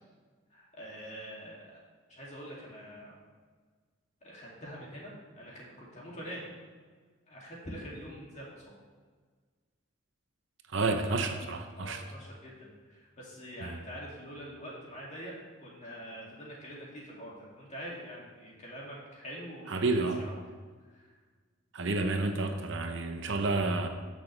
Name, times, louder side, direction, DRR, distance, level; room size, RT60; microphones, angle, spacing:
voice 1, 0.5-1.8 2.1-3.2 4.2-6.4 7.3-8.7 11.8-15.3 15.6-20.4 20.9-21.1, equal, 35° left, -4 dB, 2.5 m, -45 dB
voice 2, 10.7-12.0 13.6-13.8 19.7-20.2 21.7-23.9, right 3 dB, 60° right, 5 dB, 0.8 m, -30 dB
13.0 x 6.2 x 3.3 m, 1.5 s
head